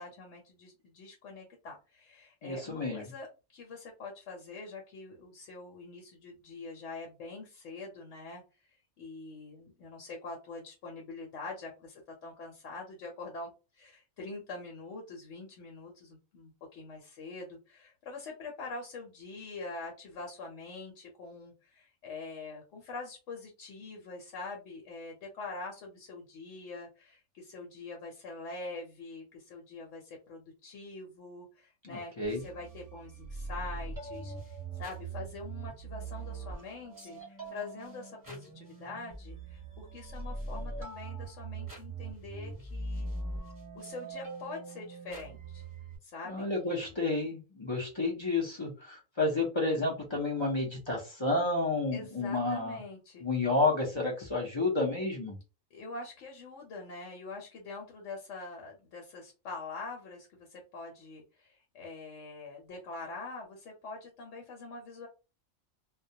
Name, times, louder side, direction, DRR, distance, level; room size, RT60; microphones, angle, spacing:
voice 1, 0.0-3.3 3.5-8.4 8.7-43.1 43.7-45.6 46.0-46.9 51.9-53.3 55.7-65.1, left 3 dB, 70° left, 0 dB, 0.9 m, -44 dB
voice 2, 2.4-3.0 31.9-32.4 46.3-52.8 53.2-55.4, left 2 dB, 45° left, -2 dB, 0.3 m, -30 dB
sound 1, 32.2-46.0, right 3 dB, 20° right, 0.7 m, -42 dB
2.2 x 2.1 x 2.7 m, 0.30 s
omnidirectional pair, 1.4 m